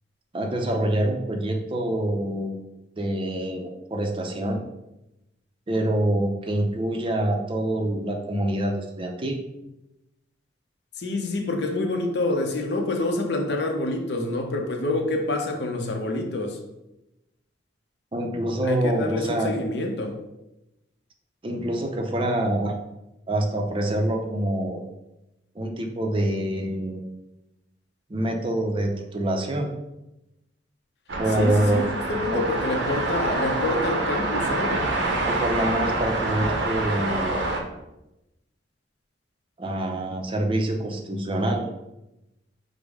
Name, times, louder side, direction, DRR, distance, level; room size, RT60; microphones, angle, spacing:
voice 1, 0.3-2.5 3.0-4.6 5.7-9.4 18.1-19.5 21.4-22.8 23.3-24.8 25.6-27.0 28.1-29.7 31.2-31.8 32.3-32.4 35.3-37.4 39.6-41.6, right 1 dB, 30° right, 3 dB, 0.5 m, -26 dB
voice 2, 11.0-16.6 18.6-20.2 31.3-34.9, left 2 dB, 65° left, 3 dB, 0.7 m, -27 dB
sound 1, 31.1-37.6, right 2 dB, 80° right, 0.8 m, -26 dB
5.2 x 2.1 x 4.8 m, 0.93 s
head